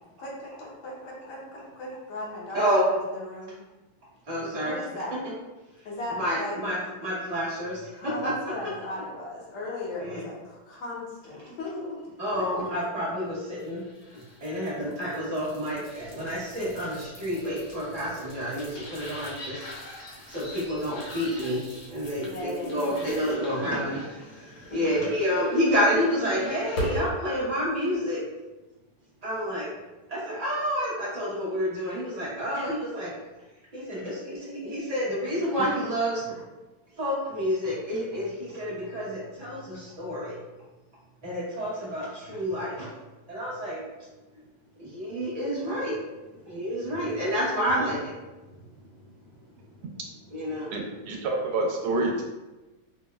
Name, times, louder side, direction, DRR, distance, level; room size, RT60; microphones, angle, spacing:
voice 1, 0.2-3.5 4.4-5.2 5.9-6.6 8.0-12.0 12.4-12.8 22.2-22.9 24.7-25.2, left 2 dB, 85° left, -5 dB, 1.7 m, -37 dB
voice 2, 4.3-4.8 6.1-8.3 10.0-10.2 12.2-13.8 14.4-19.7 20.3-21.6 21.9-24.0 24.7-28.2 29.2-29.7 30.1-33.1 33.7-36.2 37.0-40.4 41.2-42.9 43.3-43.8 44.8-46.0 46.4-48.1 50.3-50.8, equal, 40° right, -9 dB, 0.5 m, -29 dB
sound 1, 13.5-27.2, equal, 65° left, 1.1 m, -41 dB
voice 3, 50.7-52.2, right 2 dB, 80° right, 0 dB, 1.4 m, -27 dB
4.7 x 2.0 x 2.2 m, 1.1 s
omnidirectional pair, 2.3 m